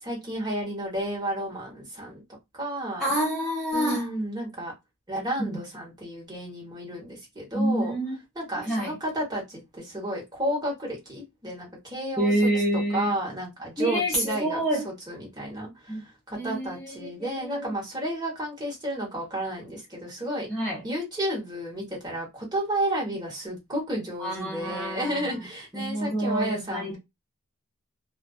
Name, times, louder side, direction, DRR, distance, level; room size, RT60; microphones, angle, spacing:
voice 1, 0.0-2.2 2.5-3.1 3.7-4.7 5.1-8.0 8.3-12.3 12.9-20.5 20.8-27.0, right 1 dB, 20° right, 1.1 m, -32 dB
voice 2, 3.0-4.1 5.4-5.6 7.5-8.2 8.6-8.9 12.2-13.1 13.8-14.9 15.9-16.0 16.3-17.7 20.5-20.8 24.2-25.4 25.7-27.0, right 1 dB, ahead, 0.6 m, -27 dB
2.4 x 2.3 x 2.3 m
head